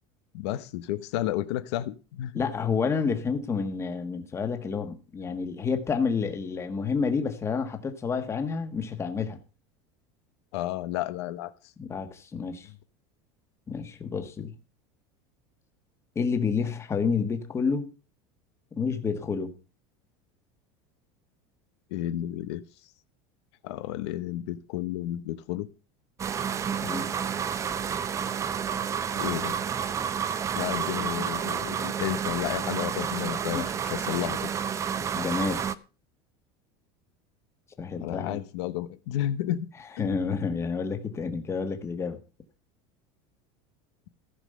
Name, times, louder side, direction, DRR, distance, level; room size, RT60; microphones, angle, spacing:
voice 1, 0.3-2.3 10.5-11.7 21.9-22.6 23.6-25.7 29.1-29.6 30.5-34.5 38.0-39.7 40.0-40.1, left 13 dB, 80° left, 12 dB, 1.0 m, -32 dB
voice 2, 2.3-9.4 11.8-12.7 13.7-14.5 16.1-17.9 18.7-19.5 26.8-27.1 33.5-33.6 35.1-35.6 37.8-38.4 40.0-42.2, left 5 dB, 20° left, 7 dB, 1.5 m, -29 dB
sound 1, 26.2-35.7, right 7 dB, 20° right, 0.6 m, -30 dB
15.0 x 5.3 x 6.6 m, 0.35 s
supercardioid pair, 150°, 14 cm